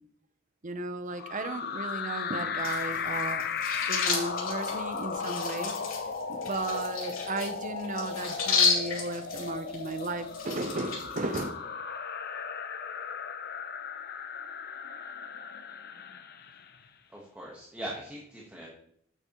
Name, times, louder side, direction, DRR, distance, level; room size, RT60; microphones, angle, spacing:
voice 1, 0.6-3.4 3.9-5.7 6.3-11.5, right 2 dB, 40° right, 8 dB, 0.8 m, -35 dB
sound 1, 1.1-16.8, left 6 dB, 50° left, 0.7 m, -36 dB
sound 2, 2.6-11.4, left 5 dB, 90° left, 3.2 m, -33 dB
voice 2, 17.1-18.7, right 1 dB, 10° right, -4 dB, 1.3 m, -40 dB
9.1 x 8.0 x 3.1 m, 0.67 s
head